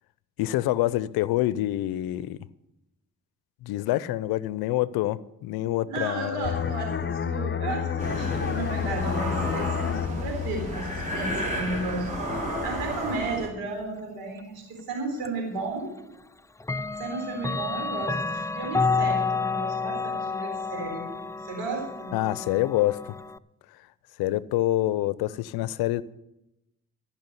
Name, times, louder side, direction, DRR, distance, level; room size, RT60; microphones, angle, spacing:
voice 1, 0.4-2.5 3.6-6.7 22.1-23.2 24.2-26.0, left 15 dB, 80° left, 0.6 m, -26 dB
voice 2, 5.9-12.1 12.3-15.9 17.0-21.1 21.4-22.1, right 3 dB, 90° right, 3.8 m, -34 dB
sound 1, 6.4-11.8 12.2-12.4, left 8 dB, 30° left, 0.7 m, -30 dB
sound 2, 8.0-13.5, equal, 20° right, 5.7 m, -32 dB
Clock, 15.2-15.3 16.6-23.4, left 4 dB, 10° left, 0.4 m, -30 dB
14.0 x 6.0 x 9.6 m
hypercardioid pair, 40°, 36 cm